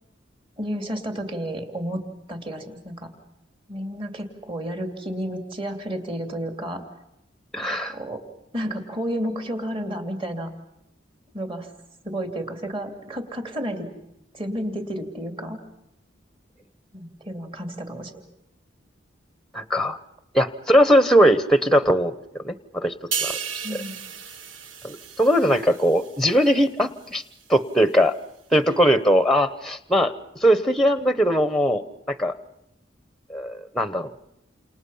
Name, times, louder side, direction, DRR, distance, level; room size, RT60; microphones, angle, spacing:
voice 1, 0.6-2.0 2.3-3.1 3.7-6.8 7.6-8.2 8.5-10.5 11.3-11.7 12.0-13.9 14.3-15.6 16.9-18.2 23.6-24.0 28.5-28.6, equal, 30° right, 4 dB, 2.8 m, -31 dB
voice 2, 7.5-8.0 19.5-20.0 20.3-22.1 22.4-22.9 23.2-23.3 24.8-27.2 27.5-28.1 28.5-30.1 30.4-31.8 32.1-32.3 33.3-34.1, equal, ahead, 12 dB, 1.0 m, -20 dB
sound 1, 23.1-26.6 27.0-27.3, right 7 dB, 85° right, 1.3 m, -34 dB
29.5 x 28.0 x 5.6 m, 0.83 s
head